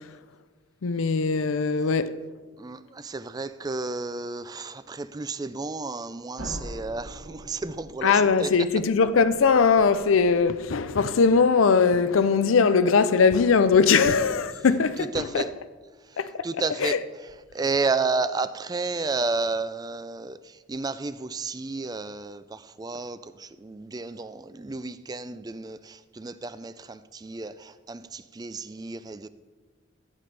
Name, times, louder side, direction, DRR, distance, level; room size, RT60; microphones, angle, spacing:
voice 1, 0.8-2.1 8.0-15.5 16.2-16.5 16.8-17.0 17.6-17.7, left 5 dB, 85° left, 0.5 m, -21 dB
voice 2, 2.6-8.1 8.4-8.5 14.0-14.1 15.1-15.5 16.4-17.0 17.5-20.4 20.7-22.4 22.8-23.2 23.6-25.8 26.2-27.5 27.9-29.3, right 3 dB, 20° right, 0.3 m, -31 dB
sound 1, 6.4-11.1, equal, 80° right, 2.0 m, -43 dB
15.0 x 8.4 x 3.3 m
head